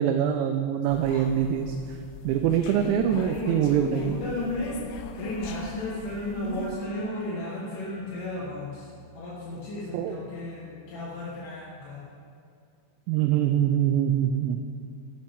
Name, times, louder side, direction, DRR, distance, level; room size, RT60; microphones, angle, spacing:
voice 1, 0.0-1.8 2.2-4.2 9.9-10.2 13.1-14.6, right 9 dB, 85° right, 5 dB, 2.6 m, -24 dB
sound 1, 0.9-6.7, left 6 dB, 90° left, 3.2 m, -41 dB
voice 2, 2.9-8.9 9.1-12.1, left 1 dB, 70° left, -5 dB, 2.1 m, -34 dB
sound 2, 4.3-4.6 4.9-11.5, right 2 dB, 50° left, 3.3 m, -44 dB
11.5 x 11.0 x 3.5 m, 2.4 s
omnidirectional pair, 5.5 m